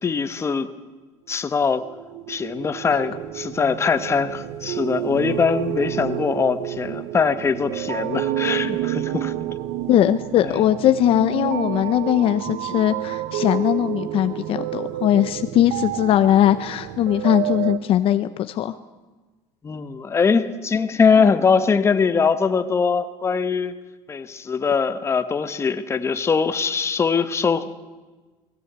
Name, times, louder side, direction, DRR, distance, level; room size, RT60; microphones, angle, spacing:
voice 1, 0.0-0.7 1.3-1.8 2.3-9.3 10.4-10.5 19.6-23.7 24.1-27.6, left 5 dB, 20° left, 10 dB, 1.1 m, -22 dB
sound 1, 1.8-17.8, right 13 dB, 80° right, 0.9 m, -29 dB
voice 2, 9.9-18.7, left 11 dB, 50° left, 11 dB, 0.8 m, -20 dB
20.0 x 16.0 x 8.2 m, 1.3 s
cardioid pair, 130°, 12 cm